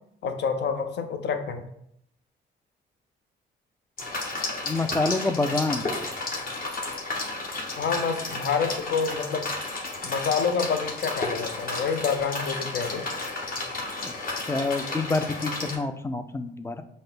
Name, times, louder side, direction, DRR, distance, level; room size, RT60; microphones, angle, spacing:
voice 1, 0.2-1.7 7.8-9.5 10.0-13.0, left 6 dB, 60° left, 7 dB, 0.6 m, -28 dB
sound 1, 4.0-15.8, left 2 dB, 45° left, 1.2 m, -32 dB
voice 2, 4.7-5.8 14.0-14.1 14.5-16.8, left 3 dB, 15° left, 9 dB, 0.3 m, -27 dB
5.2 x 2.1 x 3.8 m, 0.72 s
cardioid pair, 90°, 20 cm